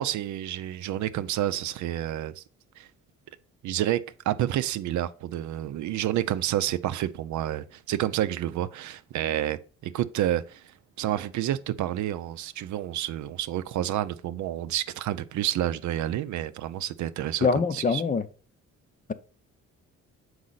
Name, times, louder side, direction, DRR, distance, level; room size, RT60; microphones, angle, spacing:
voice 1, 0.0-2.4 2.8-2.9 3.6-4.0 4.3-17.5 17.7-18.0, right 12 dB, 70° right, 0.6 m, -29 dB
voice 2, 17.4-18.3, left 5 dB, 25° left, 0.6 m, -24 dB
6.4 x 4.8 x 4.0 m
cardioid pair, 90°, 30 cm